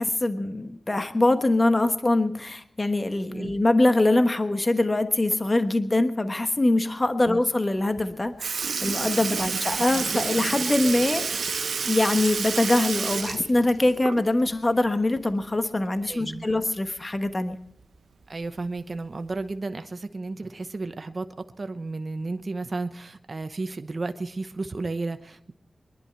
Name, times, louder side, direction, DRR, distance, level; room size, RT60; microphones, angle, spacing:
voice 1, 0.0-11.5 11.8-17.6, left 2 dB, 35° left, 9 dB, 1.2 m, -23 dB
Sink (filling or washing) / Liquid, 8.0-8.1 8.4-14.5 14.9-15.0 16.5-16.6 17.5-17.6 18.4-18.7 19.5-19.6, right 5 dB, 85° right, 1.0 m, -29 dB
voice 2, 16.1-16.5 18.3-21.3 21.6-25.5, right 3 dB, 55° right, 9 dB, 0.9 m, -33 dB
23.0 x 11.0 x 4.5 m, 0.66 s
cardioid pair, 45°, 0 cm